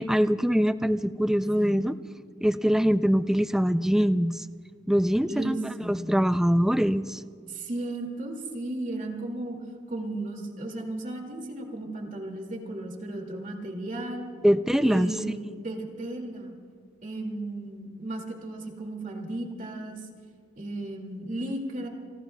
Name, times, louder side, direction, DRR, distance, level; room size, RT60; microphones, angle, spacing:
voice 1, 0.0-1.9 2.4-4.4 4.9-7.2 14.4-15.1, equal, 5° right, 13 dB, 0.3 m, -23 dB
voice 2, 5.3-6.2 7.5-9.6 9.9-14.3 14.8-16.5 17.0-20.0 20.6-21.9, right 2 dB, 45° right, 2 dB, 2.2 m, -35 dB
29.0 x 18.5 x 2.2 m, 2.1 s
head